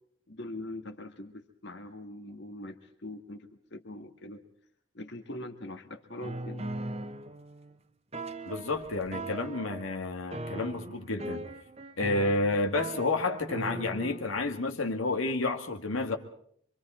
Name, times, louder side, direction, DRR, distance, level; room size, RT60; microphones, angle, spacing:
voice 1, 0.3-4.4 4.9-6.7, left 1 dB, 55° left, 5 dB, 1.9 m, -42 dB
sound 1, 6.1-7.7 8.1-9.9 10.3-14.3, right 2 dB, 30° right, 1.2 m, -39 dB
voice 2, 8.5-11.4 12.0-16.2, left 2 dB, 80° left, 4 dB, 2.0 m, -30 dB
26.0 x 25.5 x 4.4 m, 0.63 s
head